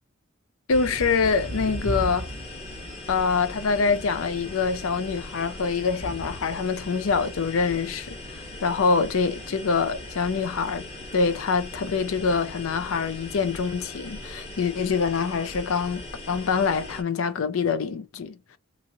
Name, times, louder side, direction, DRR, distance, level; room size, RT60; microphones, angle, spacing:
voice 1, 0.7-2.3 3.1-10.8 11.1-18.6, left 5 dB, 80° left, 0.5 m, -25 dB
sound 1, 0.7-17.0, left 1 dB, 30° left, 1.1 m, -38 dB
3.0 x 2.5 x 2.7 m
head